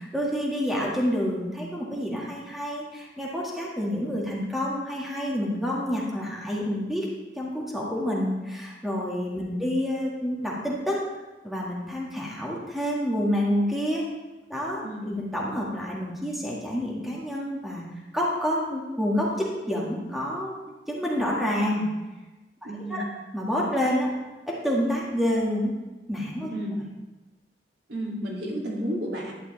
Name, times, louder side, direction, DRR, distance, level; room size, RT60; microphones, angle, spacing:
voice 1, 0.0-7.1 7.4-11.0 11.4-14.0 14.5-17.8 18.1-20.6 20.9-21.9 22.9-23.0 23.3-24.1 24.5-25.7 26.1-26.5, equal, ahead, -5 dB, 1.8 m, -28 dB
voice 2, 14.8-15.2 22.6-23.1 26.5-26.7 27.9-29.3, equal, 65° right, -3 dB, 2.5 m, -32 dB
11.5 x 9.8 x 3.3 m, 1.1 s
head